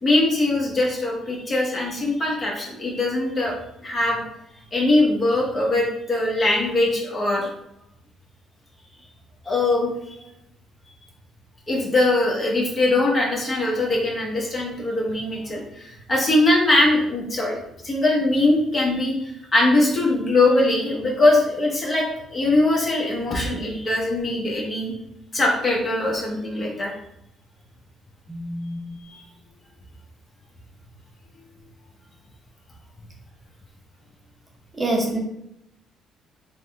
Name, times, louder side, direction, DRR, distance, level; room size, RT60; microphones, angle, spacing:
voice 1, 0.0-3.5 3.8-4.2 4.7-7.5 9.4-9.9 11.7-17.6 17.8-19.1 19.5-22.1 22.3-24.9 25.3-26.9 29.1-29.2, left 2 dB, 35° left, -2 dB, 1.1 m, -21 dB
voice 2, 28.3-28.9 34.7-35.2, right 1 dB, 15° right, -1 dB, 0.8 m, -26 dB
3.4 x 2.2 x 3.5 m, 0.77 s
supercardioid pair, 75°, 0 cm